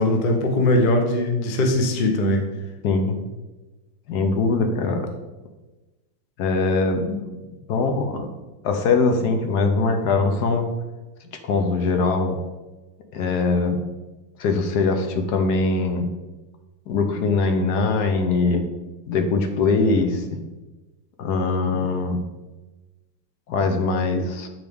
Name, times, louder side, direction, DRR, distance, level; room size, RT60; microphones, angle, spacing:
voice 1, 0.0-2.4 21.7-21.8, left 1 dB, 90° left, 2 dB, 0.4 m, -20 dB
voice 2, 2.8-3.1 4.1-5.1 6.4-7.2 7.7-8.3 8.6-10.7 11.4-12.4 13.1-13.8 14.4-16.1 16.9-18.6 19.1-20.2 21.2-22.2 23.5-24.5, left 3 dB, 65° left, 5 dB, 1.1 m, -22 dB
8.8 x 4.0 x 3.4 m, 1.2 s
omnidirectional pair, 2.2 m